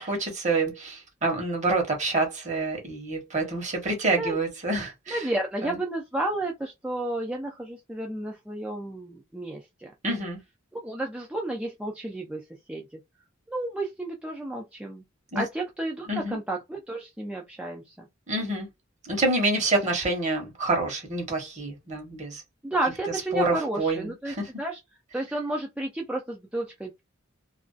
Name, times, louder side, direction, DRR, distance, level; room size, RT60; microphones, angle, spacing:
voice 1, 0.0-5.3 5.6-5.8 10.0-10.4 15.3-15.4 16.1-16.4 18.3-18.7 19.0-22.4 23.3-24.5, right 2 dB, 35° right, 1.0 m, -27 dB
voice 2, 5.1-9.9 10.7-12.4 12.7-13.0 13.5-15.0 15.4-18.1 22.6-24.8 25.1-27.0, right 2 dB, 5° right, 0.4 m, -32 dB
2.4 x 2.2 x 2.4 m
head